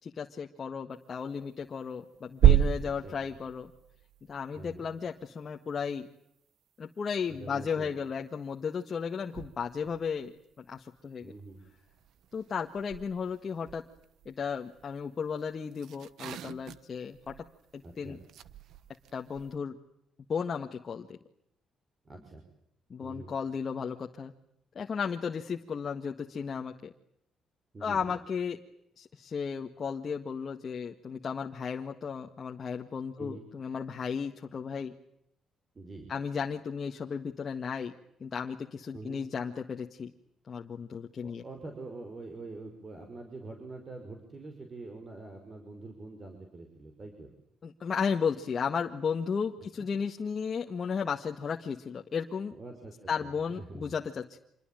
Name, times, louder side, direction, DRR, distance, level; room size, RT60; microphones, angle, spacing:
voice 1, 0.0-3.7 4.3-6.1 6.8-11.3 12.3-13.8 14.3-17.4 17.7-18.2 19.1-19.8 20.3-21.2 22.9-24.3 24.8-26.9 27.8-28.6 29.0-34.9 36.1-37.9 38.2-40.1 40.5-41.4 47.6-52.6 53.1-54.4, left 6 dB, 45° left, 2 dB, 1.8 m, -34 dB
sound 1, 1.1-1.8 2.1-5.5 8.9-11.0 11.2-19.6, right 11 dB, 75° right, 1.2 m, -32 dB
voice 2, 2.8-3.4 4.5-4.8 7.3-7.9 11.2-11.6 17.8-18.2 22.0-22.4 23.0-23.3 27.7-28.2 33.2-33.5 35.7-36.1 38.9-39.2 41.2-47.3 49.6-49.9 52.5-53.9, right 3 dB, 35° right, 4 dB, 6.0 m, -45 dB
27.0 x 22.0 x 9.2 m, 0.74 s
cardioid pair, 90°, 0 cm